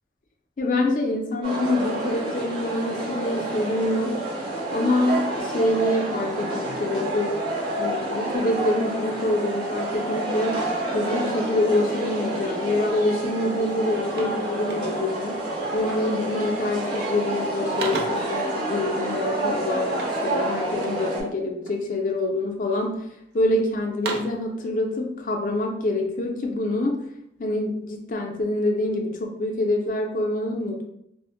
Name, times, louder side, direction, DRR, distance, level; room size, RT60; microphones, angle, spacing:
voice 1, 0.6-4.2 4.7-7.4 7.8-10.7 10.9-15.4 15.7-23.0 23.3-27.0 27.4-30.8, left 1 dB, 50° left, 2 dB, 0.4 m, -26 dB
sound 1, 1.4-21.2, right 1 dB, 30° right, 0.7 m, -28 dB
sound 2, 13.2-13.4 13.7-15.2 15.9-16.2 16.5-17.0 17.4-18.4 19.9-21.1 21.6-22.2 22.8-23.4 23.8-24.5, right 3 dB, 70° right, 0.5 m, -36 dB
2.1 x 2.0 x 3.6 m, 0.77 s
head